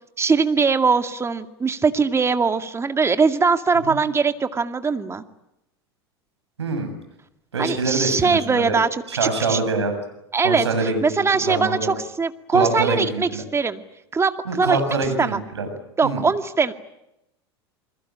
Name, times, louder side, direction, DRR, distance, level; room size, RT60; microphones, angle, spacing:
voice 1, 0.2-5.2 7.6-9.6 10.3-13.8 14.1-14.3 14.6-14.8 15.2-15.4 16.0-16.7, right 4 dB, 20° right, 9 dB, 2.1 m, -21 dB
voice 2, 6.6-6.9 7.5-8.8 9.1-9.9 10.4-12.0 12.5-13.4 14.5-15.7 16.0-16.2, right 3 dB, 90° right, 6 dB, 7.5 m, -25 dB
28.5 x 21.5 x 9.0 m, 0.87 s
hypercardioid pair, 85°, 14 cm